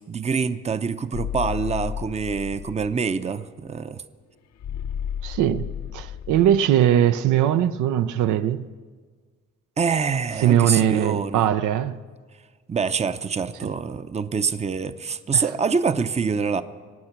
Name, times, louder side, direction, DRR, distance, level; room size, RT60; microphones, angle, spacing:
voice 1, 0.0-4.0 9.8-11.5 12.7-16.6, right 5 dB, 20° right, 0.6 m, -25 dB
sound 1, 1.1-3.0 4.6-6.6, left 9 dB, 60° left, 0.7 m, -32 dB
voice 2, 5.2-8.6 10.4-12.0 13.6-13.7 15.3-15.4, right 10 dB, 85° right, 0.6 m, -20 dB
23.5 x 8.9 x 5.9 m
cardioid pair, 90°, 30 cm